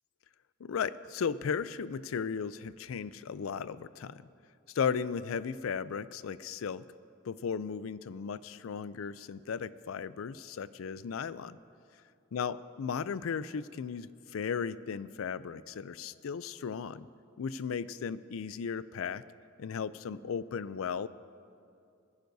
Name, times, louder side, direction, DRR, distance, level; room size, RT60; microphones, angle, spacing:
voice 1, 0.6-4.3 4.7-6.8 7.2-11.6 12.3-17.1 17.4-19.2 19.6-21.1, left 6 dB, 90° left, 16 dB, 0.4 m, -36 dB
20.0 x 15.0 x 2.7 m, 2.4 s
head